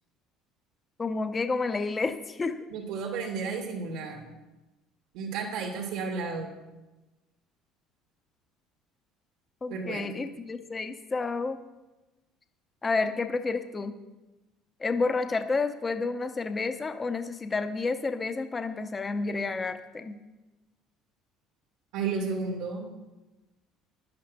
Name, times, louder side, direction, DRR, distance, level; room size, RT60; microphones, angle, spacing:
voice 1, 1.0-2.5 9.6-11.6 12.8-13.9 14.8-20.2, left 3 dB, 15° left, 8 dB, 0.7 m, -30 dB
voice 2, 2.7-4.2 5.1-6.5 9.7-10.1 21.9-22.9, right 5 dB, 80° right, 0 dB, 2.5 m, -32 dB
10.5 x 9.5 x 6.1 m, 1.1 s
cardioid pair, 155°, 0 cm